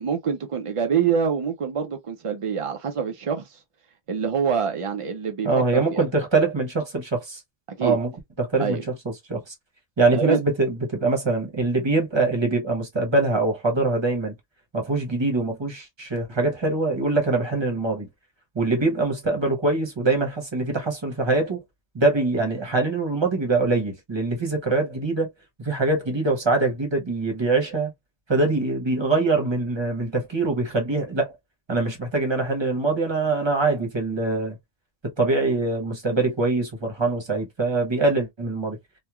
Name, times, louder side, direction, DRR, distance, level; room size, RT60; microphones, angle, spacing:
voice 1, 0.0-3.6 4.1-6.0 7.8-8.0 8.6-8.8 10.1-10.4, right 6 dB, 60° right, 0.3 m, -25 dB
voice 2, 5.4-7.4 7.8-8.1 8.4-9.5 10.0-14.3 14.7-18.1 18.5-21.6 21.9-25.3 25.6-27.9 28.3-31.4 31.7-34.6 35.0-38.8, right 3 dB, 30° right, 0.8 m, -23 dB
3.0 x 2.2 x 2.3 m
omnidirectional pair, 1.1 m